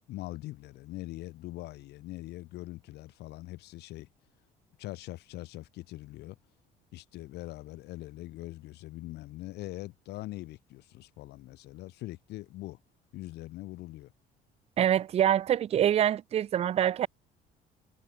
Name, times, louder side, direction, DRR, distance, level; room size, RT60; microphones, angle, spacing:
voice 1, 0.0-4.1 4.8-6.4 6.9-12.8 13.1-14.1, left 17 dB, 80° left, 1.9 m, -42 dB
voice 2, 14.8-17.1, right 10 dB, 40° right, 0.4 m, -25 dB
cardioid pair, 110°, 17 cm